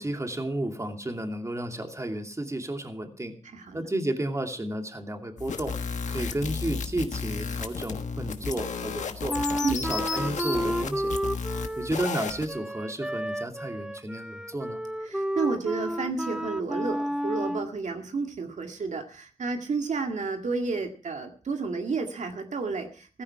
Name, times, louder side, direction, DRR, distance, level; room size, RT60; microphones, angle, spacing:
voice 1, 0.0-3.4 3.7-5.7 6.1-9.4 9.7-11.1 11.8-14.8, right 1 dB, 25° right, 4 dB, 2.6 m, -32 dB
voice 2, 3.5-3.9 9.6-9.8 15.0-23.2, right 4 dB, 80° right, 4 dB, 2.0 m, -31 dB
sound 1, 5.4-12.5, left 5 dB, 85° left, 1.4 m, -33 dB
Wind instrument woodwind instrument, 9.3-17.7, equal, 5° right, 0.7 m, -31 dB
15.5 x 14.5 x 4.7 m, 0.40 s
cardioid pair, 70°, 12 cm